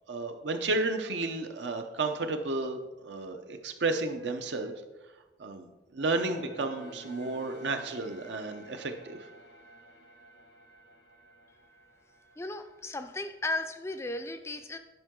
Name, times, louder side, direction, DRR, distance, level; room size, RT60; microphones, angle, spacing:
voice 1, 0.1-4.7 5.4-9.2, right 3 dB, 75° right, 6 dB, 0.8 m, -32 dB
sound 1, 6.2-13.5, right 1 dB, 85° left, 1.3 m, -52 dB
voice 2, 12.4-14.8, left 2 dB, 15° left, 8 dB, 0.4 m, -35 dB
10.5 x 5.4 x 3.7 m, 1.1 s
head